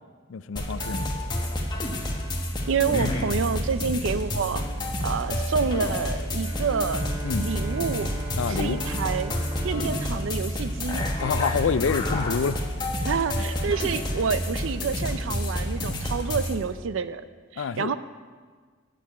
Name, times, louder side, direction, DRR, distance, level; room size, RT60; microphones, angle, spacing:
voice 1, 0.3-1.1 7.2-7.5 8.3-8.8 11.2-12.6 17.6-17.9, left 6 dB, 75° left, 15 dB, 0.4 m, -27 dB
sound 1, 0.6-16.6, left 1 dB, 20° left, 1.3 m, -29 dB
voice 2, 2.7-4.6 5.0-7.1 7.4-8.1 8.5-9.3 9.6-11.0 13.0-17.2 17.5-18.0, right 5 dB, 85° right, 13 dB, 0.5 m, -28 dB
Bowed string instrument, 6.4-11.7, right 3 dB, 25° right, 1.3 m, -38 dB
9.3 x 6.8 x 8.3 m, 1.5 s
head